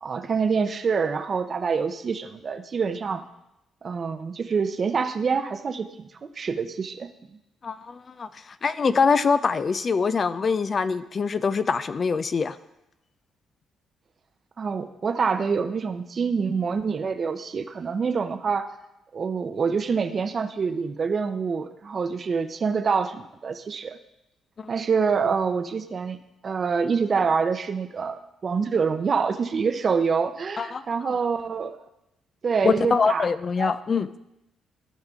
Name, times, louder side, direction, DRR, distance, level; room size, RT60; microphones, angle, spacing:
voice 1, 0.0-3.2 3.8-5.9 6.2-7.1 14.6-18.7 19.1-24.0 24.7-26.2 26.4-31.8 32.4-33.3 33.6-33.7, right 5 dB, 45° right, 10 dB, 0.7 m, -26 dB
voice 2, 7.6-12.6 24.6-24.7 30.6-30.8 32.6-34.1, left 5 dB, 40° left, 13 dB, 0.4 m, -24 dB
15.0 x 5.5 x 3.6 m, 0.89 s
cardioid pair, 90°, 0 cm